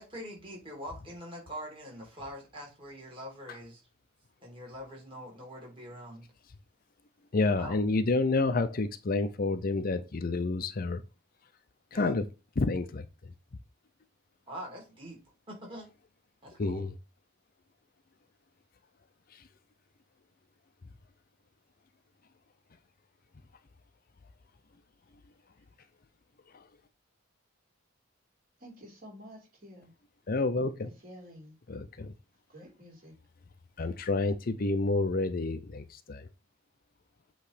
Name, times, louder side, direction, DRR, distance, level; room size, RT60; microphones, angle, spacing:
voice 1, 0.0-3.8 4.4-6.3 7.6-7.8 11.9-12.1 14.5-15.2 15.5-15.9 16.4-16.8, equal, 25° right, 3.1 m, -43 dB
voice 2, 7.3-11.0 11.9-12.2 12.6-13.0 16.6-16.9 26.5-26.6 30.3-30.9 31.7-32.1 33.8-36.3, left 3 dB, 45° left, 0.6 m, -29 dB
voice 3, 28.6-29.9 31.0-31.5 32.5-33.1, equal, 50° right, 3.4 m, -50 dB
8.3 x 3.2 x 5.0 m
head